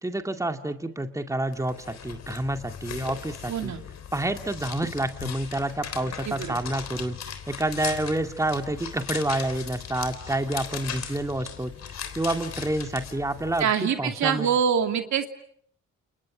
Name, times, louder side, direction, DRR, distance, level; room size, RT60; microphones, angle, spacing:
voice 1, 0.0-3.7 4.1-14.6, right 1 dB, 10° right, 6 dB, 2.2 m, -29 dB
sound 1, 1.5-13.6, left 8 dB, 60° left, 3.7 m, -38 dB
voice 2, 3.5-3.8 6.3-6.6 13.6-15.3, right 7 dB, 70° right, 6 dB, 2.8 m, -25 dB
29.5 x 29.0 x 6.2 m, 0.64 s
cardioid pair, 90°, 30 cm